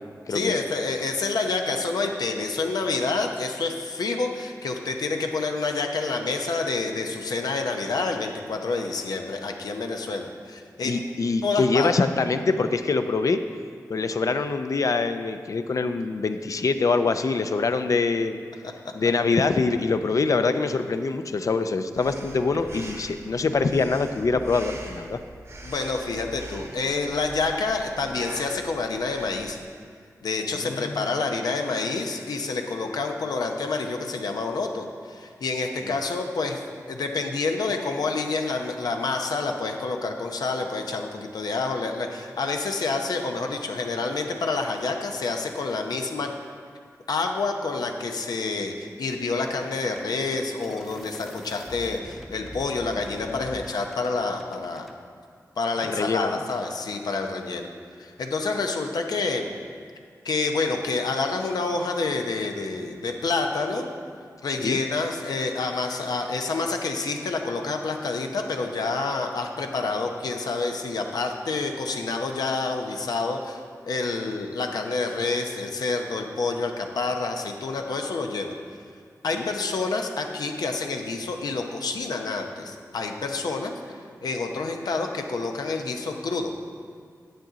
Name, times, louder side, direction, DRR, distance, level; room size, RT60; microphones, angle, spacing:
voice 1, 0.3-11.0 11.4-11.9 25.6-29.6 30.2-36.6 36.9-46.3 47.1-54.9 55.6-57.7 58.0-59.5 60.2-63.9 64.4-78.5 79.2-86.5, left 3 dB, 85° left, 3 dB, 0.8 m, -28 dB
voice 2, 10.8-13.4 13.9-18.4 18.9-25.2 30.6-31.0 35.9-36.0 53.2-53.6 55.8-56.4 64.5-64.8 79.3-79.5, left 4 dB, 60° left, 9 dB, 0.5 m, -24 dB
Breathing, 22.0-29.6, right 2 dB, 45° right, 1.0 m, -42 dB
sound 1, 49.5-55.0, equal, ahead, 0.8 m, -44 dB
8.9 x 8.1 x 3.9 m, 2.1 s
wide cardioid pair, 65°, 7 cm